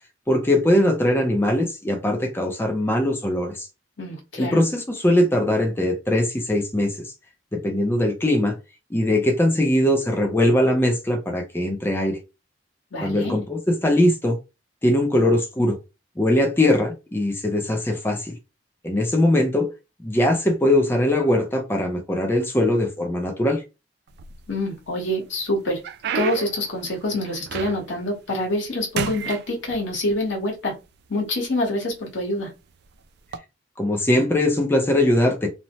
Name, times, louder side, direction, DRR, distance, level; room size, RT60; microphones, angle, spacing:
voice 1, 0.3-3.7 4.4-7.0 7.5-8.6 8.9-12.2 13.0-14.4 14.8-15.8 16.2-18.3 18.8-19.7 20.0-23.6 33.8-35.5, left 1 dB, 10° left, 0.4 m, -21 dB
voice 2, 4.0-4.6 12.9-13.4 24.5-25.8 26.1-30.7 31.1-32.5, left 1 dB, 75° left, 1.2 m, -26 dB
sound 1, 24.1-24.8 25.3-28.1 28.4-28.7 28.9-30.2 31.0-31.1 31.8-32.0 33.2-33.4, right 6 dB, 60° right, 0.3 m, -32 dB
2.7 x 2.1 x 3.0 m
head